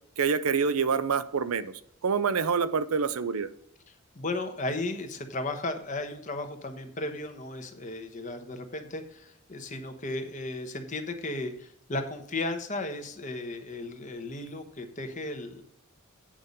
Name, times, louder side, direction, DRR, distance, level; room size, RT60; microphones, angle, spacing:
voice 1, 0.2-3.5, right 5 dB, 85° right, 14 dB, 0.6 m, -27 dB
voice 2, 4.1-15.6, left 2 dB, 35° left, 7 dB, 1.1 m, -35 dB
8.8 x 5.4 x 5.3 m, 0.69 s
head